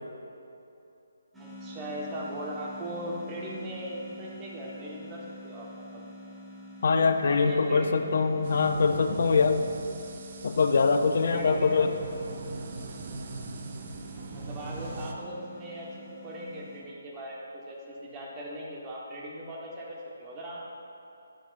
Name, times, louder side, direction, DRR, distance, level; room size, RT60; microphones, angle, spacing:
sound 1, 1.3-16.8, left 1 dB, 5° right, 1.0 m, -47 dB
voice 1, 1.4-6.0 7.2-7.9 11.3-12.0 14.3-20.6, equal, 20° right, -4 dB, 1.2 m, -39 dB
voice 2, 6.8-9.7 10.4-11.9, left 4 dB, 60° left, 7 dB, 0.4 m, -23 dB
sound 2, 8.4-15.1, right 3 dB, 45° right, 0.6 m, -40 dB
10.0 x 5.9 x 2.5 m, 2.9 s
figure-of-eight pair, 150°, 0 cm